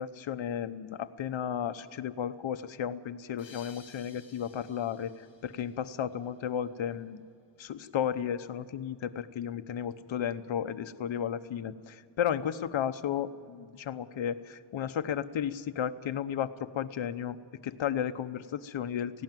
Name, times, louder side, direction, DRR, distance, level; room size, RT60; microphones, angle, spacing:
voice 1, 0.0-5.1 5.4-7.2 7.6-17.4 17.6-19.2, left 9 dB, 75° left, 9 dB, 0.9 m, -33 dB
sound 1, 3.4-6.5, left 4 dB, 50° left, 5.0 m, -56 dB
18.0 x 16.0 x 9.2 m, 2.2 s
wide cardioid pair, 155°, 47 cm